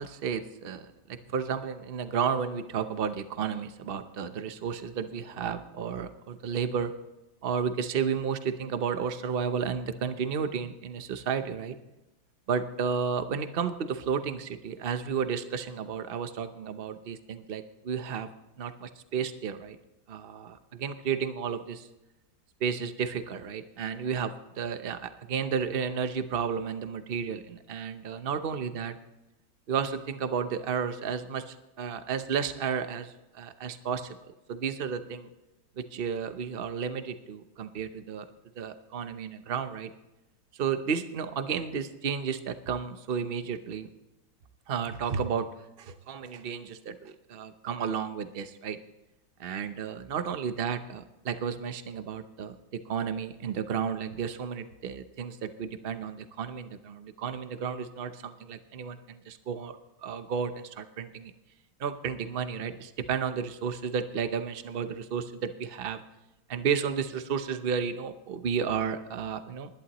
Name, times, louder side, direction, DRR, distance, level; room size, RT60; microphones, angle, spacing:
voice 1, 0.0-6.9 7.4-11.8 12.5-18.3 18.6-19.8 20.1-21.9 22.6-29.0 29.7-34.2 34.5-35.3 35.8-38.3 38.6-39.9 40.5-43.9 44.7-45.5 45.8-48.8 49.4-52.5 52.9-59.8 60.0-61.3 61.8-66.0 66.5-69.7, right 7 dB, 65° right, 10 dB, 0.5 m, -32 dB
20.0 x 11.5 x 3.0 m, 0.99 s
omnidirectional pair, 2.2 m